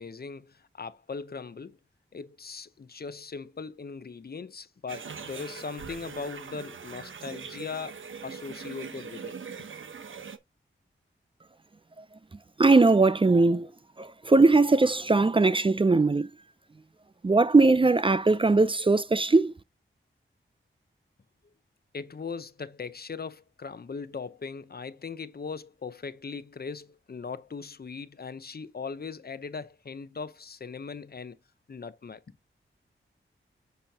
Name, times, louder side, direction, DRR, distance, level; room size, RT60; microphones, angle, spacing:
voice 1, 0.0-1.8 2.1-9.7 21.9-31.4 31.7-32.4, left 5 dB, 50° left, 0.8 m, -39 dB
sound 1, 4.9-10.4, right 6 dB, 70° right, 0.9 m, -41 dB
voice 2, 12.6-13.7 14.0-16.3 17.2-19.5, right 3 dB, 25° right, 0.4 m, -20 dB
6.9 x 5.7 x 2.9 m
cardioid pair, 55°, 21 cm